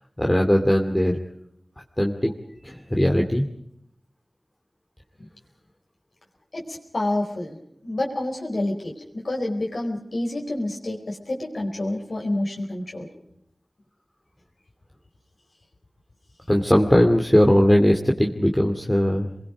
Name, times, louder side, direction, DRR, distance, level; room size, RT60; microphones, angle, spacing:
voice 1, 0.2-1.2 2.0-2.3 2.6-3.5 16.5-19.3, equal, 15° left, 2 dB, 2.4 m, -19 dB
voice 2, 6.5-7.6 7.8-13.1, left 1 dB, 65° left, -1 dB, 4.6 m, -28 dB
29.0 x 22.0 x 5.1 m, 0.74 s
wide cardioid pair, 65°, 0 cm